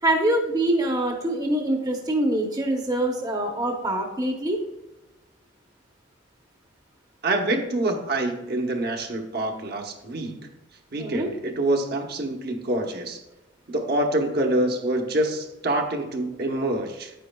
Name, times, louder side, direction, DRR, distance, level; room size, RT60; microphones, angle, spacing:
voice 1, 0.0-4.6 11.0-11.3, right 1 dB, 20° right, 2 dB, 0.8 m, -24 dB
voice 2, 7.2-10.5 10.9-13.2 13.7-17.1, right 1 dB, 55° right, 2 dB, 1.0 m, -26 dB
9.3 x 9.1 x 2.3 m, 1.0 s
head